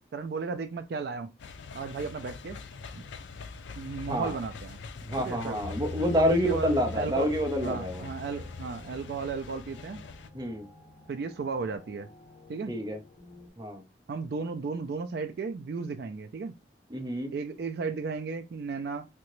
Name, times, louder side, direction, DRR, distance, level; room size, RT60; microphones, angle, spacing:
voice 1, 0.1-1.3 1.7-2.6 3.8-4.8 5.2-5.6 6.2-7.3 7.6-10.0 11.1-12.1 12.5-12.7 14.1-16.6 17.3-19.1, right 4 dB, 60° right, 0.3 m, -34 dB
sound 1, 1.4-10.3, left 4 dB, 80° left, 0.4 m, -44 dB
voice 2, 5.1-8.1 10.3-10.7 12.7-13.0 13.6-13.8 16.9-17.3, equal, 25° right, 0.7 m, -28 dB
sound 2, 5.6-13.5, left 3 dB, 40° left, 1.2 m, -44 dB
3.7 x 2.1 x 3.0 m
head